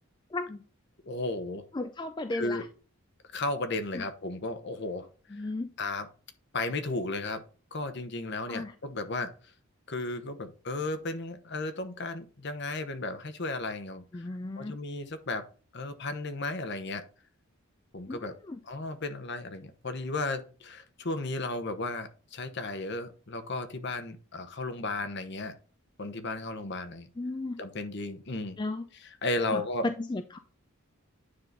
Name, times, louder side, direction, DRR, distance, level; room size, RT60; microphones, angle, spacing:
voice 1, 1.0-1.6 2.3-2.6 3.3-5.5 5.8-6.1 6.5-7.4 7.7-9.5 9.9-14.2 14.6-15.5 15.7-17.0 17.9-18.3 18.6-25.6 26.0-27.1 27.6-28.6 29.2-29.9, left 2 dB, 50° left, 1.0 m, -34 dB
voice 2, 1.7-2.7 3.9-4.0 5.3-5.7 8.5-8.7 14.1-14.8 18.1-18.6 27.2-27.6 28.6-28.8 29.5-30.4, left 2 dB, 20° left, 0.3 m, -35 dB
9.7 x 3.8 x 3.9 m
head